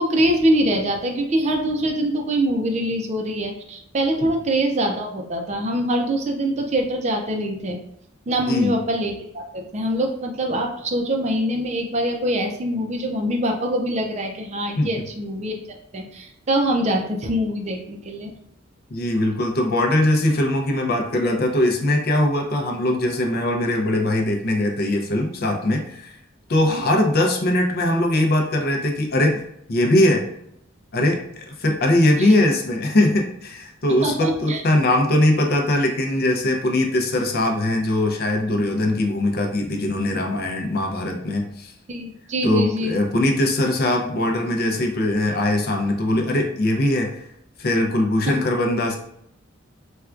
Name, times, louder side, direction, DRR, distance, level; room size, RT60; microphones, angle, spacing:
voice 1, 0.0-7.8 8.3-15.6 15.9-18.3 26.7-26.8 32.2-32.3 34.0-34.6 41.9-43.0 48.3-48.4, right 1 dB, 35° right, 3 dB, 0.4 m, -24 dB
voice 2, 18.9-26.1 26.5-29.4 29.7-30.2 30.9-41.7 42.4-47.2 47.6-49.0, left 1 dB, 50° left, 2 dB, 0.5 m, -21 dB
4.3 x 2.3 x 2.4 m, 0.75 s
head